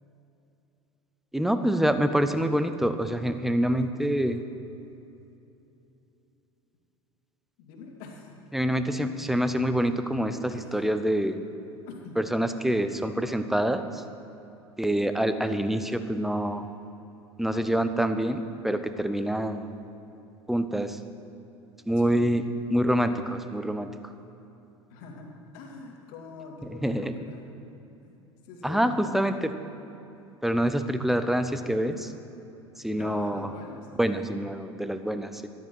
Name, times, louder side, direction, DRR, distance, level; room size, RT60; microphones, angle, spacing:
voice 1, 1.3-4.4 8.5-11.4 12.2-14.0 14.8-16.6 17.4-19.7 20.5-21.0 21.9-22.4 22.7-23.9 26.8-27.1 28.6-29.5 30.4-32.1 32.8-33.5 34.0-35.5, equal, ahead, 10 dB, 0.7 m, -26 dB
voice 2, 7.6-8.4 10.5-10.9 11.9-12.2 22.0-22.5 24.9-27.4 28.0-28.2 28.4-29.2 32.9-33.9, left 4 dB, 55° left, 1 dB, 2.2 m, -44 dB
13.0 x 13.0 x 4.5 m, 2.9 s
figure-of-eight pair, 75°, 15 cm